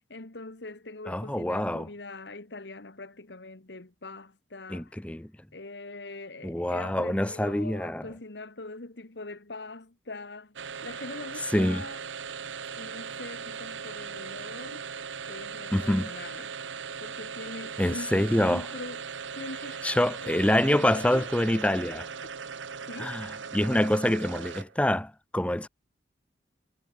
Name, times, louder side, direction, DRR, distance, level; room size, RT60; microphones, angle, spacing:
voice 1, 0.1-5.0 5.5-10.5 10.8-12.0 12.8-14.8 15.3-16.5 17.0-19.8 20.2-21.3 22.9-23.2, left 2 dB, 70° left, 1.6 m, -42 dB
voice 2, 1.1-1.9 4.7-5.3 6.4-8.1 11.5-11.8 15.7-16.1 17.8-18.7 19.8-22.1 23.0-25.7, left 1 dB, 5° left, 0.6 m, -26 dB
sound 1, 10.6-24.9, right 6 dB, 85° right, 1.0 m, -39 dB
head